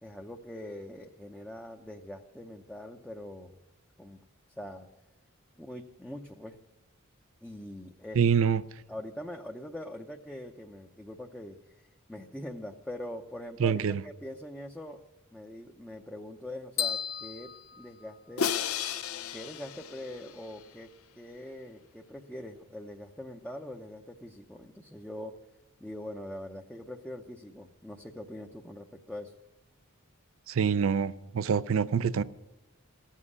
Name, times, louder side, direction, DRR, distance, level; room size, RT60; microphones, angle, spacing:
voice 1, 0.0-3.6 4.0-4.2 4.5-4.9 5.6-6.6 7.4-8.2 8.9-15.0 15.3-18.5 19.3-25.4 25.8-29.3, left 1 dB, 5° left, 0.6 m, -43 dB
voice 2, 8.1-8.6 13.6-14.0 30.5-32.2, right 7 dB, 65° right, 0.4 m, -26 dB
sound 1, 16.8-18.7, left 8 dB, 45° left, 0.5 m, -35 dB
Crash cymbal, 18.4-20.6, left 7 dB, 85° left, 0.7 m, -33 dB
15.0 x 7.4 x 9.7 m
head